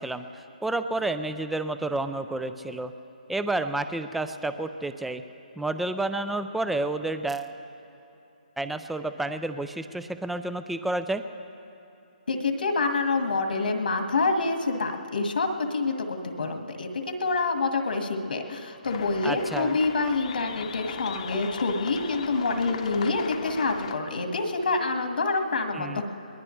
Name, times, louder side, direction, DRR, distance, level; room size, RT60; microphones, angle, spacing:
voice 1, 0.0-2.9 3.3-5.2 5.6-7.5 8.6-11.2 19.2-19.7 25.7-26.0, right 2 dB, ahead, 10 dB, 0.3 m, -30 dB
voice 2, 12.3-26.0, left 3 dB, 80° left, 5 dB, 1.8 m, -27 dB
sound 1, 18.8-23.9, left 7 dB, 45° left, 0.8 m, -38 dB
22.0 x 20.0 x 3.2 m, 2.8 s
hypercardioid pair, 160°, 5 cm